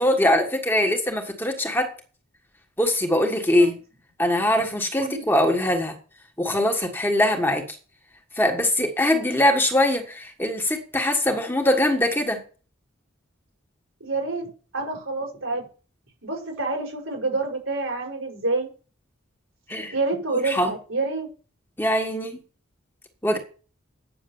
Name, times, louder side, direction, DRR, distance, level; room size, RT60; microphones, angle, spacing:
voice 1, 0.0-1.9 2.8-3.7 4.2-5.9 6.4-7.6 8.4-12.4 19.7-19.9 20.4-20.7 21.8-22.4 23.2-23.4, left 1 dB, 10° left, 3 dB, 1.5 m, -22 dB
voice 2, 14.0-14.5 14.7-15.6 16.2-18.7 19.9-21.3, right 3 dB, 75° right, 1 dB, 4.9 m, -27 dB
9.1 x 6.8 x 7.1 m, 0.37 s
head